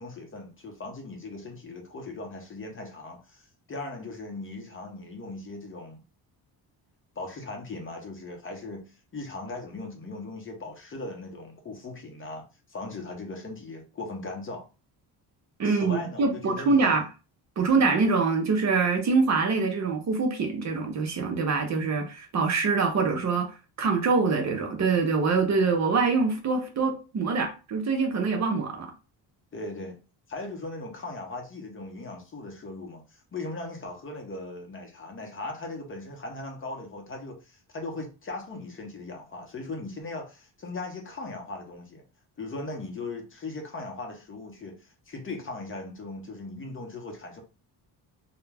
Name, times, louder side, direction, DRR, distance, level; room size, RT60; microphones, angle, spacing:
voice 1, 0.0-3.4 3.7-6.0 7.2-14.6 15.6-16.9 17.7-17.9 29.5-30.0 30.3-42.0 42.4-47.4, left 2 dB, 30° left, 0.6 m, -38 dB
voice 2, 15.6-17.0 17.6-23.5 23.8-28.9, right 4 dB, 40° right, 0.6 m, -24 dB
2.3 x 2.1 x 3.2 m
cardioid pair, 125°, 41 cm